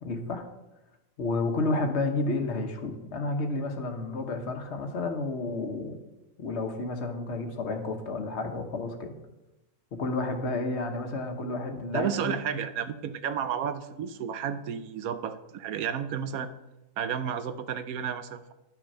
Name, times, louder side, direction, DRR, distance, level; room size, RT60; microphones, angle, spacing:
voice 1, 0.0-0.4 1.2-5.9 6.4-9.2 10.0-12.6, left 2 dB, 50° left, 5 dB, 1.4 m, -31 dB
voice 2, 11.9-16.5 17.0-18.5, right 8 dB, 85° right, 11 dB, 1.2 m, -32 dB
11.0 x 6.1 x 5.5 m, 0.98 s
omnidirectional pair, 1.5 m